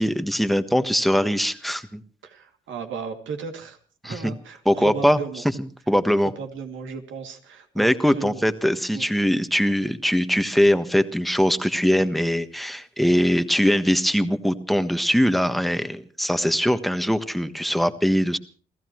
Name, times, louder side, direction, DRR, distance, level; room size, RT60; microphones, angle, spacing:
voice 1, 0.0-2.0 4.0-4.3 4.6-5.2 5.6-6.3 7.7-18.4, equal, ahead, 10 dB, 1.4 m, -21 dB
voice 2, 2.2-3.8 4.0-5.4 6.4-8.4 8.9-9.1, right 5 dB, 75° right, 4 dB, 2.7 m, -35 dB
28.5 x 15.5 x 3.1 m, 0.42 s
cardioid pair, 90°, 20 cm